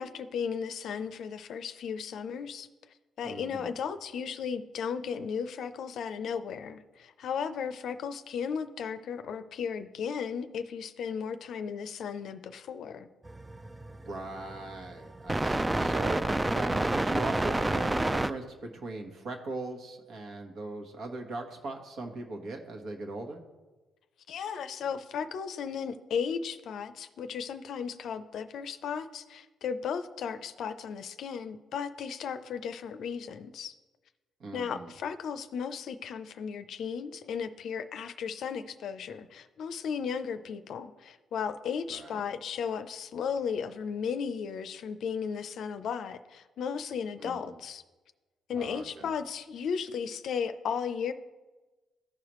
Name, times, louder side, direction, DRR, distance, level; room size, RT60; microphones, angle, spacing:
voice 1, 0.0-2.7 3.2-13.1 24.3-33.7 34.5-47.8 48.5-51.1, left 6 dB, 70° left, 10 dB, 0.5 m, -35 dB
voice 2, 3.2-3.7 14.0-16.2 16.5-23.4 34.4-34.9 41.9-42.2 47.2-47.6 48.5-49.1, right 2 dB, 65° right, 3 dB, 1.3 m, -39 dB
sound 1, 13.3-18.3, right 2 dB, 15° right, 0.3 m, -29 dB
14.5 x 4.9 x 3.1 m, 1.2 s
cardioid pair, 90°, 0 cm